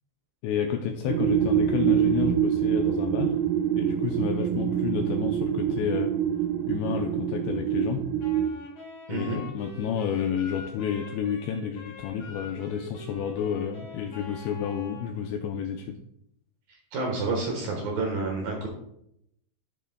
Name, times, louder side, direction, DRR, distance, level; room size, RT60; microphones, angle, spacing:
voice 1, 0.4-3.4 3.8-6.2 6.7-8.1 9.1-16.0, left 8 dB, 85° left, 5 dB, 2.5 m, -30 dB
sound 1, 1.1-8.5, right 10 dB, 85° right, 3.3 m, -25 dB
Wind instrument woodwind instrument, 8.2-15.2, left 3 dB, 50° left, 4.0 m, -44 dB
voice 2, 9.1-9.4 16.9-18.7, right 3 dB, 70° right, 1 dB, 2.3 m, -29 dB
11.0 x 10.0 x 2.2 m, 0.77 s
omnidirectional pair, 5.5 m